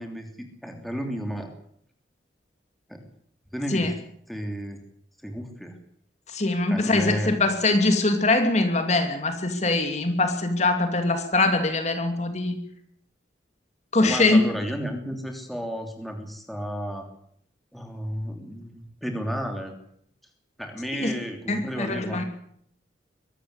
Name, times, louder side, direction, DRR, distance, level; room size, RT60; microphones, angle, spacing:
voice 1, 0.0-1.5 2.9-3.0 3.5-3.9 4.3-4.8 5.2-5.7 6.7-7.3 14.0-17.1 17.7-19.7 20.6-22.2, equal, ahead, 3 dB, 3.1 m, -32 dB
voice 2, 6.3-12.6 13.9-14.4 20.9-21.1 21.5-22.2, left 2 dB, 40° left, 6 dB, 2.7 m, -22 dB
23.0 x 13.0 x 9.7 m, 0.67 s
head